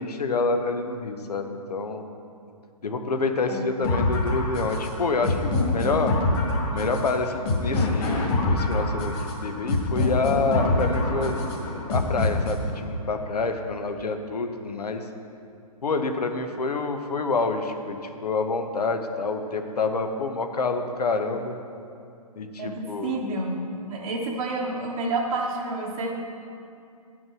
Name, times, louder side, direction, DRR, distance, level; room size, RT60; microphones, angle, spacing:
voice 1, 0.0-2.0 2.8-6.1 6.7-9.1 9.4-11.4 11.9-15.0 15.8-21.5 22.4-23.2, left 3 dB, 85° left, 6 dB, 0.9 m, -27 dB
sound 1, 3.8-12.8, left 2 dB, 40° left, 2.1 m, -25 dB
voice 2, 22.6-26.1, right 2 dB, 60° right, -3 dB, 1.2 m, -29 dB
9.2 x 6.1 x 6.2 m, 2.5 s
hypercardioid pair, 140°, 20 cm